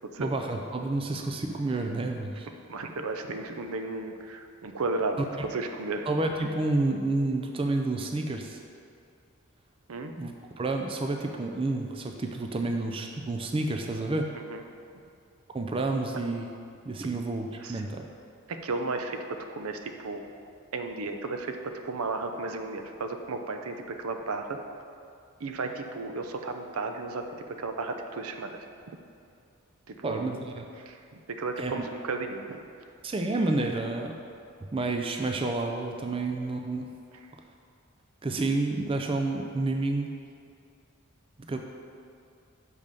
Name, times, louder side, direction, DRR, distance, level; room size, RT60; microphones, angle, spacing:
voice 1, 0.2-2.5 6.1-8.6 10.2-14.3 15.5-16.5 16.8-18.1 30.0-30.6 31.6-31.7 33.0-34.2 34.7-36.9 38.2-40.1 41.4-41.6, right 2 dB, 25° right, 3 dB, 0.4 m, -29 dB
voice 2, 2.7-6.1 9.9-10.1 14.5-14.6 17.6-17.8 18.5-20.2 20.7-24.6 25.4-28.7 29.9-30.3 30.8-32.6, right 3 dB, 85° right, 6 dB, 0.6 m, -34 dB
6.5 x 5.3 x 5.2 m, 2.4 s
head